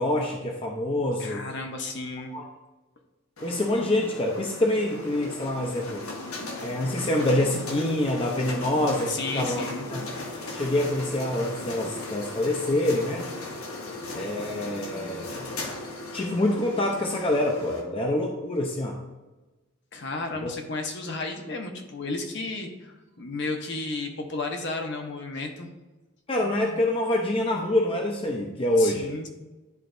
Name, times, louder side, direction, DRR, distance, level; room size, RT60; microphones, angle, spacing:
voice 1, 0.0-1.4 2.3-2.5 3.4-6.1 6.6-9.6 9.9-10.0 10.5-13.2 14.1-15.3 16.1-18.9 20.4-20.5 26.3-29.1, left 1 dB, 25° left, 1 dB, 0.5 m, -26 dB
voice 2, 1.2-2.3 9.1-9.9 19.9-25.7 28.8-29.3, left 3 dB, 55° left, 3 dB, 0.8 m, -33 dB
sound 1, 3.4-17.8, left 2 dB, 85° left, 1.2 m, -37 dB
10.5 x 4.0 x 2.6 m, 1.2 s
head